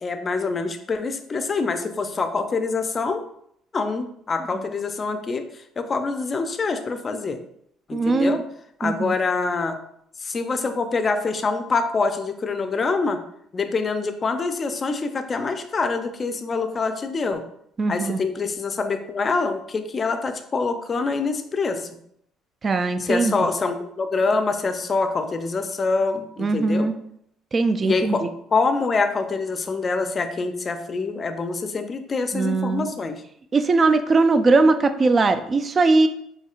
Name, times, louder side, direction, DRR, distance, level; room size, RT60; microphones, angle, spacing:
voice 1, 0.0-3.2 3.7-5.4 5.8-7.4 7.9-8.4 8.8-9.8 10.2-13.2 13.5-17.4 17.9-21.9 23.0-26.9 27.8-28.3 28.5-33.2, left 4 dB, 35° left, 8 dB, 0.4 m, -25 dB
voice 2, 7.9-8.4 8.8-9.1 17.8-18.2 22.6-23.5 26.4-26.9 27.5-28.2 32.3-32.9 33.5-36.1, right 3 dB, 35° right, 9 dB, 0.3 m, -20 dB
4.3 x 2.7 x 2.4 m, 0.70 s
supercardioid pair, 85°, 0 cm